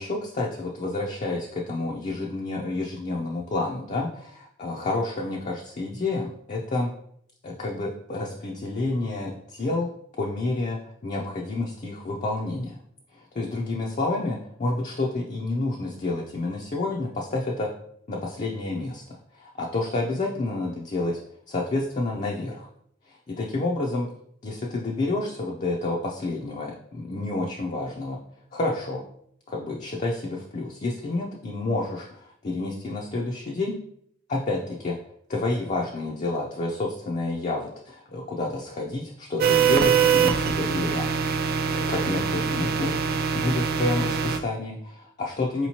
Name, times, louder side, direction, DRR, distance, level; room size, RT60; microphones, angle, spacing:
voice 1, 0.0-6.9 7.4-9.9 10.2-12.8 13.1-17.7 18.1-21.2 21.5-22.7 23.1-24.1 24.4-28.2 28.5-29.0 29.5-33.8 34.3-35.0 35.3-41.1 41.7-43.0 43.3-45.7, left 2 dB, 40° left, -1 dB, 0.4 m, -29 dB
sound 1, 39.4-44.4, right 6 dB, 50° right, 0.4 m, -23 dB
4.8 x 2.9 x 2.8 m, 0.68 s
head